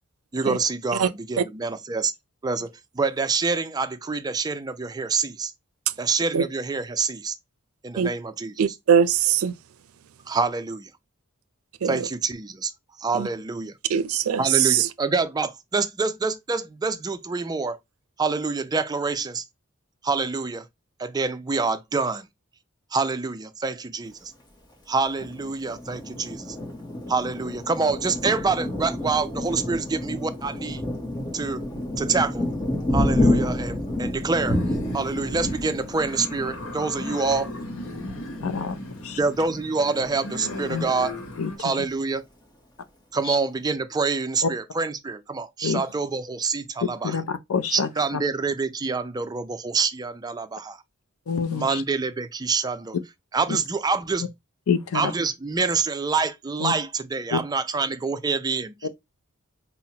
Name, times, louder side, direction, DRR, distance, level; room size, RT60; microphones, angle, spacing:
voice 1, 0.3-2.1 2.4-2.7 2.9-5.5 6.0-7.4 7.8-8.8 10.3-10.8 11.9-12.7 13.0-13.7 14.4-17.8 18.2-19.4 20.0-20.7 21.0-22.3 22.9-24.3 24.9-26.6 27.1-30.8 31.3-31.6 32.0-32.5 32.9-34.6 34.9-37.5 39.2-41.2 41.6-42.2 43.1-47.2 47.7-50.8 51.5-53.0 53.3-54.3 54.9-58.9, right 4 dB, 20° right, 0.4 m, -26 dB
voice 2, 8.6-9.5 11.8-12.1 13.1-13.3 13.9-14.9, right 8 dB, 85° right, 0.5 m, -21 dB
Thunder, 25.2-39.5 40.0-40.1 40.4-41.0, left 1 dB, 20° left, 0.8 m, -29 dB
sound 1, 34.4-41.6, left 1 dB, 65° left, 1.0 m, -36 dB
voice 3, 38.4-38.8 39.0-39.2 40.7-40.8 41.4-41.5 43.3-43.4 44.4-44.5 45.6-45.8 46.8-48.2 51.3-51.8 53.5-53.6 54.7-55.1 56.6-56.7 57.3-57.4, left 6 dB, 80° left, 0.5 m, -27 dB
5.5 x 2.0 x 2.8 m
head